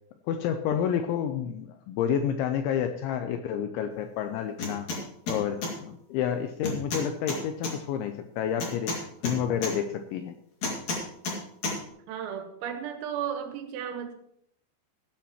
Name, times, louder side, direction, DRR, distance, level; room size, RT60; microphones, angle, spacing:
voice 1, 0.3-4.9 5.3-9.0 9.2-10.4, left 8 dB, 85° left, 7 dB, 2.7 m, -29 dB
sound 1, 4.6-5.0 5.3-5.7 6.6-7.7 8.6-9.7 10.6-11.4 11.6-11.8, left 3 dB, 45° left, 2.7 m, -31 dB
voice 2, 12.1-14.2, right 8 dB, 85° right, 6 dB, 4.0 m, -34 dB
15.5 x 12.0 x 3.0 m, 0.72 s
omnidirectional pair, 5.9 m